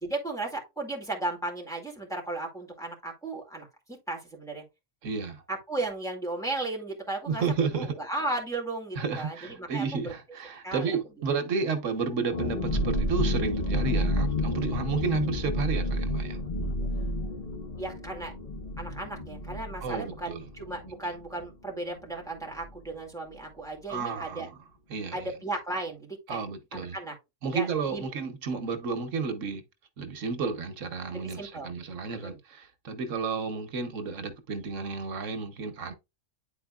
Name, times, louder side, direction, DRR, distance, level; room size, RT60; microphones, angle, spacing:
voice 1, 0.0-4.6 5.5-7.4 7.7-10.0 10.6-11.0 17.8-18.3 18.8-24.5 25.1-26.4 26.7-27.1 27.5-28.0 31.1-31.7 32.1-32.4, right 2 dB, 5° left, 2.1 m, -35 dB
voice 2, 5.0-5.4 7.3-8.0 9.0-16.4 19.8-20.4 23.9-24.5 24.9-25.3 26.3-27.0 27.4-29.6 30.0-35.9, right 5 dB, 90° right, 1.3 m, -32 dB
sound 1, 12.3-21.7 22.0-22.1 22.4-22.7, left 1 dB, 40° left, 1.1 m, -30 dB
9.7 x 4.2 x 2.3 m
omnidirectional pair, 1.3 m